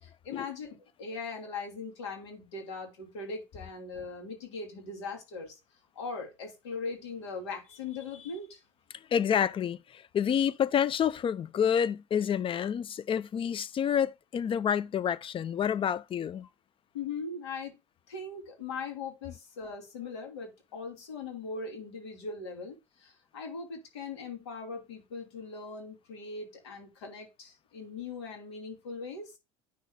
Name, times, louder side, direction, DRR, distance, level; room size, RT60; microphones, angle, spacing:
voice 1, 0.0-5.6 5.9-8.6 16.9-17.8 18.1-29.3, left 4 dB, 85° left, 2.7 m, -40 dB
voice 2, 9.1-16.5, left 8 dB, 40° left, 0.6 m, -28 dB
9.5 x 6.3 x 2.2 m
hypercardioid pair, 75°, 14 cm